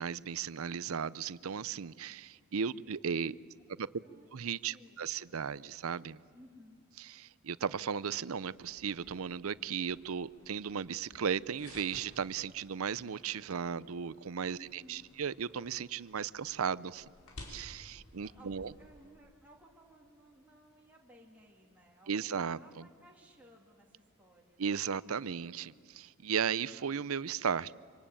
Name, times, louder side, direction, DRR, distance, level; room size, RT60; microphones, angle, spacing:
voice 1, 0.0-3.3 3.8-3.9 4.3-6.2 7.1-17.0 17.5-18.7 22.1-22.8 24.6-27.7, right 7 dB, 80° right, 18 dB, 0.6 m, -36 dB
voice 2, 4.0-4.4 4.7-5.1 6.3-6.8 14.6-15.1 18.0-24.6, equal, 5° right, -2 dB, 2.8 m, -59 dB
sound 1, 8.5-19.1, left 1 dB, 85° left, 5.2 m, -56 dB
26.0 x 25.5 x 8.8 m, 2.1 s
head